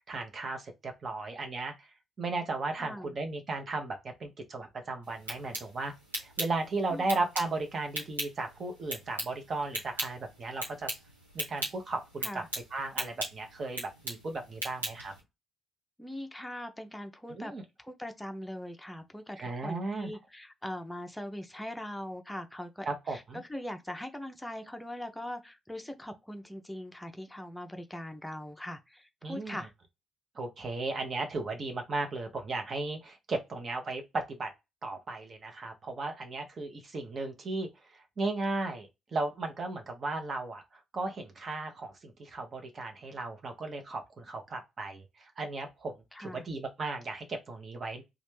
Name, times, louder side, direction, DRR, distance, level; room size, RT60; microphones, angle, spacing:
voice 1, 0.1-1.9 2.2-5.9 6.2-10.9 11.3-12.4 12.7-15.1 17.3-17.6 19.4-20.1 22.8-23.4 29.2-29.6 30.3-34.5 34.8-37.7 38.2-40.6 40.9-45.9 46.2-48.0, right 3 dB, 40° right, 0.9 m, -35 dB
voice 2, 2.8-3.2 6.9-7.1 12.2-12.5 16.0-17.5 17.8-23.2 23.5-29.7 46.1-46.4, left 1 dB, 5° left, 0.6 m, -41 dB
sound 1, 5.0-15.2, right 1 dB, 90° right, 1.1 m, -40 dB
3.1 x 2.4 x 3.1 m
figure-of-eight pair, 45°, 0 cm